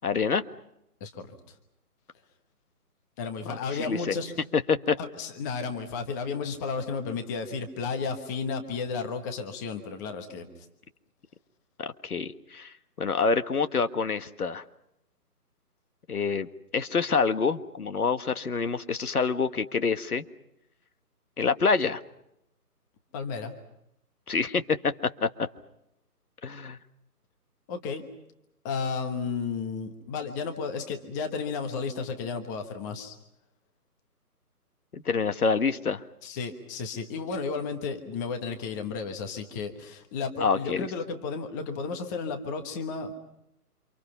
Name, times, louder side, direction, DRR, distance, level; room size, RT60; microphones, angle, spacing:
voice 1, 0.0-0.4 3.9-4.1 4.5-5.0 11.8-14.6 16.1-16.5 16.7-20.2 21.4-22.0 24.3-24.9 25.2-25.5 26.4-26.8 34.9-36.0 40.4-40.9, left 5 dB, 65° left, 10 dB, 1.7 m, -26 dB
voice 2, 1.0-1.3 3.2-4.3 5.0-10.5 23.1-23.5 27.7-28.0 28.6-33.2 36.2-43.2, left 5 dB, 10° left, 6 dB, 1.2 m, -33 dB
29.0 x 27.0 x 5.8 m, 0.81 s
figure-of-eight pair, 150°, 47 cm